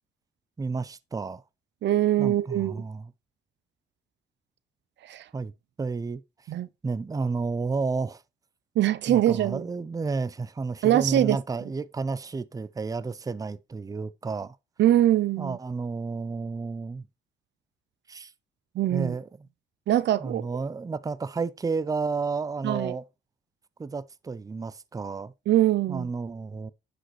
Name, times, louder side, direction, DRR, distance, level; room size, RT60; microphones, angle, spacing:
voice 1, 0.6-1.4 2.2-3.1 5.3-5.5 5.8-6.2 6.8-8.2 9.1-14.6 15.4-17.1 18.1-18.3 18.9-19.3 20.2-23.0 23.8-25.3 25.9-26.7, right 4 dB, 15° right, 0.5 m, -31 dB
voice 2, 1.8-2.8 5.0-5.3 6.5-6.7 8.8-9.6 10.8-11.4 14.8-15.6 18.8-19.1 19.9-20.5 22.6-23.0 25.5-26.1, right 13 dB, 65° right, 0.5 m, -23 dB
10.0 x 5.1 x 3.1 m
cardioid pair, 90°, 20 cm